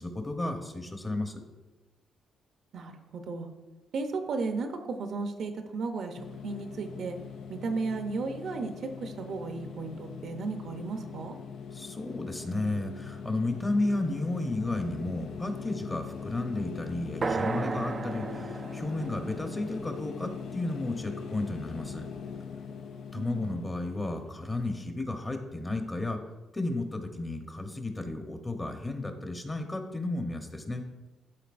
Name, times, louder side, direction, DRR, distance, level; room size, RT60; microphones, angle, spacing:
voice 1, 0.0-1.4 11.7-22.0 23.1-26.2 26.5-30.8, left 2 dB, 15° left, 5 dB, 0.9 m, -33 dB
voice 2, 2.7-3.5 3.9-7.2 7.5-11.4 23.1-23.6, right 4 dB, 65° right, 6 dB, 0.7 m, -34 dB
sound 1, 6.1-24.8, left 6 dB, 70° left, 0.5 m, -41 dB
sound 2, 17.2-21.1, right 4 dB, 35° right, 0.3 m, -35 dB
12.0 x 4.0 x 2.6 m, 1.2 s
cardioid pair, 90°, 0 cm